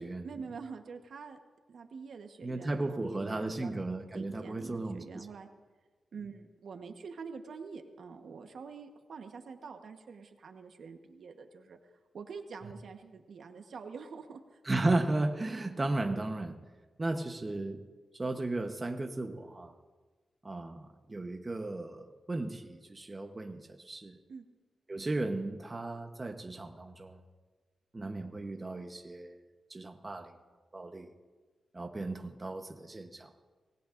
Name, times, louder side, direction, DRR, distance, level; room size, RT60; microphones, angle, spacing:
voice 1, 0.2-1.4 1.7-3.7 4.1-5.5 6.1-11.8 12.1-14.6 24.3-24.4, right 5 dB, 70° right, 5 dB, 1.2 m, -46 dB
voice 2, 2.4-5.3 14.7-16.6 17.0-17.8 18.2-19.7 20.4-24.2 24.9-27.2 27.9-29.3 29.7-30.3 30.7-31.1 31.7-33.3, right 2 dB, 25° right, 5 dB, 1.0 m, -35 dB
25.5 x 19.0 x 2.6 m, 1.3 s
wide cardioid pair, 115°, 0 cm